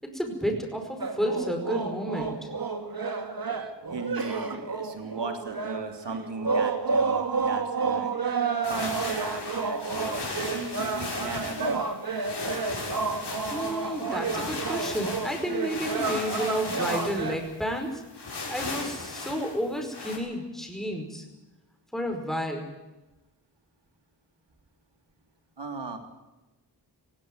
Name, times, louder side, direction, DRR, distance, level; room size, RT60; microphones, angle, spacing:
voice 1, 0.0-2.5 13.5-18.0 18.5-21.2 21.9-22.7, equal, ahead, 3 dB, 5.1 m, -31 dB
sound 1, 1.0-17.4, right 4 dB, 55° right, 2.4 m, -30 dB
voice 2, 3.9-8.1 8.7-11.8 25.6-26.0, right 3 dB, 75° right, 5 dB, 3.3 m, -37 dB
sound 2, 8.6-20.2, left 3 dB, 65° left, 6.2 m, -37 dB
18.5 x 16.5 x 9.5 m, 1.1 s
wide cardioid pair, 65°, 43 cm